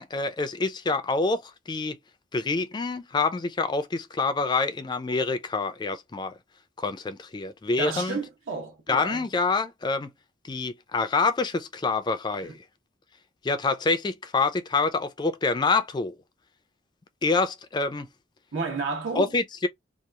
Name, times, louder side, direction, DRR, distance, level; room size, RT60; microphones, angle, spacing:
voice 1, 0.0-2.0 2.3-6.3 6.8-8.2 8.9-10.1 10.4-12.5 13.4-16.2 17.2-18.1 19.2-19.7, left 3 dB, 20° left, 0.3 m, -26 dB
voice 2, 7.8-9.2 12.4-12.5 18.5-19.3, right 4 dB, 80° right, 1.0 m, -32 dB
2.8 x 2.3 x 2.2 m
head